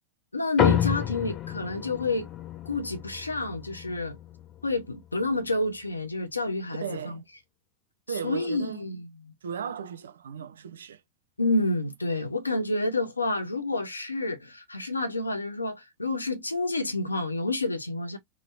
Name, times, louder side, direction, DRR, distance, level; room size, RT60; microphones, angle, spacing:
voice 1, 0.3-2.3 2.7-4.2 4.6-7.2 8.2-9.3 11.4-18.2, left 2 dB, 80° left, 0.7 m, -29 dB
sound 1, 0.6-5.3, left 11 dB, 30° left, 0.6 m, -30 dB
voice 2, 6.8-7.2 8.1-8.9 9.4-11.0, right 8 dB, 65° right, 0.4 m, -36 dB
3.0 x 2.9 x 2.7 m
figure-of-eight pair, 90°, 0 cm